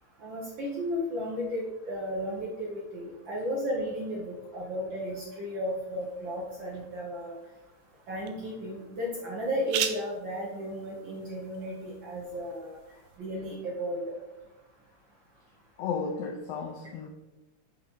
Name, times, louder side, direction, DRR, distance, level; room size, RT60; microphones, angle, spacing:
voice 1, 0.2-7.3 8.1-12.8 13.2-14.1, equal, 55° right, -3 dB, 1.3 m, -34 dB
sound 1, 5.7-13.2, right 9 dB, 85° right, 1.5 m, -41 dB
voice 2, 15.8-17.1, left 5 dB, 85° left, 4 dB, 1.4 m, -33 dB
8.4 x 5.8 x 3.7 m, 1.1 s
omnidirectional pair, 3.5 m